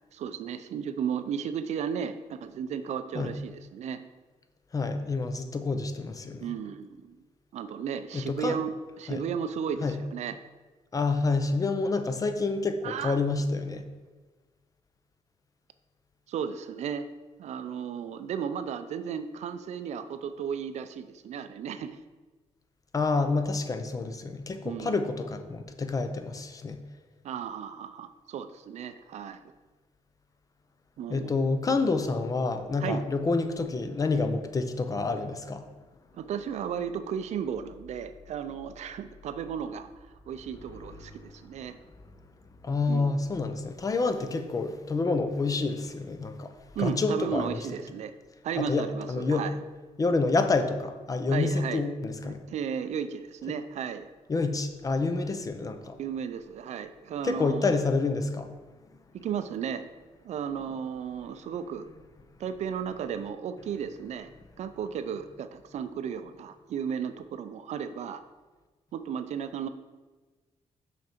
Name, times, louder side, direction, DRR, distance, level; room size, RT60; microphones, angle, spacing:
voice 1, 0.1-4.0 6.4-7.2 7.5-10.4 12.8-13.2 16.3-17.1 17.4-22.0 24.6-25.0 27.2-29.4 31.0-31.3 32.8-33.0 36.1-39.9 40.3-41.8 42.9-43.2 46.7-48.1 48.4-49.5 51.3-51.8 52.2-54.1 56.0-57.8 59.1-59.8 60.2-61.9 62.4-64.3 64.6-68.2 68.9-69.7, right 7 dB, 70° right, 11 dB, 0.4 m, -34 dB
voice 2, 4.7-6.5 8.1-8.6 9.1-9.2 9.8-10.0 10.9-13.9 22.9-26.8 31.1-35.7 40.7-40.8 41.2-41.3 42.6-47.6 48.6-49.5 50.0-52.5 54.3-56.0 57.2-58.5, left 3 dB, 30° left, 8 dB, 0.6 m, -28 dB
6.1 x 5.9 x 4.4 m, 1.3 s
cardioid pair, 140°, 12 cm